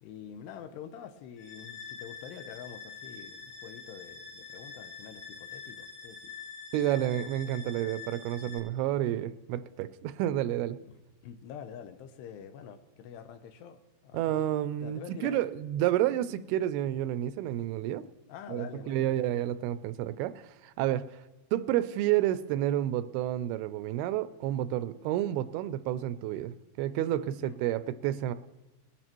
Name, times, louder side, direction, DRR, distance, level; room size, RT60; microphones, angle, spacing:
voice 1, 0.0-6.3 10.8-11.0 11.2-14.5 14.8-15.4 18.3-19.6 27.2-27.6, left 8 dB, 85° left, 8 dB, 2.9 m, -46 dB
sound 1, 1.4-8.6, left 6 dB, 55° left, 4.5 m, -45 dB
voice 2, 6.7-10.8 14.1-18.0 18.5-21.1 21.5-28.3, right 12 dB, 85° right, 13 dB, 2.3 m, -30 dB
20.5 x 12.0 x 3.0 m, 1.1 s
omnidirectional pair, 4.8 m